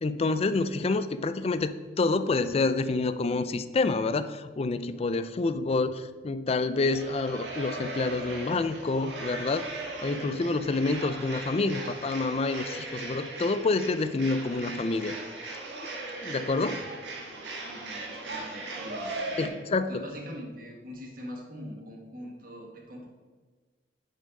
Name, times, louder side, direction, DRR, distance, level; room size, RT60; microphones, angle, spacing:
voice 1, 0.0-9.7 10.0-15.1 16.2-16.9 19.4-20.0, left 3 dB, 35° left, 12 dB, 0.4 m, -28 dB
sound 1, 6.9-19.5, right 2 dB, 90° right, 1.8 m, -38 dB
voice 2, 17.0-19.6 19.9-23.1, equal, 55° right, 0 dB, 1.8 m, -43 dB
7.1 x 5.4 x 5.3 m, 1.4 s
head